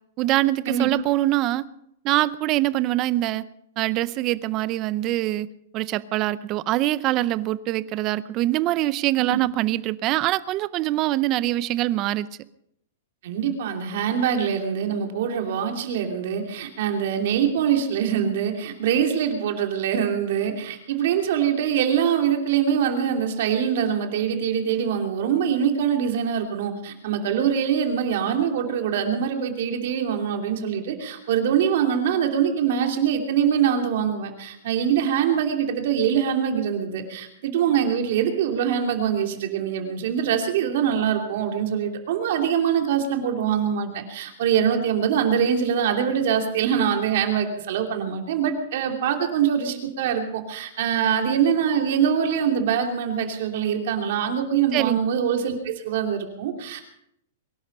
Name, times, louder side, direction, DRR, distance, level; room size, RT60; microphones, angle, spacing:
voice 1, 0.2-1.6 2.0-3.4 3.8-5.5 5.7-12.3 54.7-55.0, right 16 dB, 30° right, 18 dB, 0.6 m, -24 dB
voice 2, 13.2-56.8, right 8 dB, 55° right, 4 dB, 2.9 m, -24 dB
23.0 x 11.5 x 5.5 m, 0.76 s
supercardioid pair, 165°, 0 cm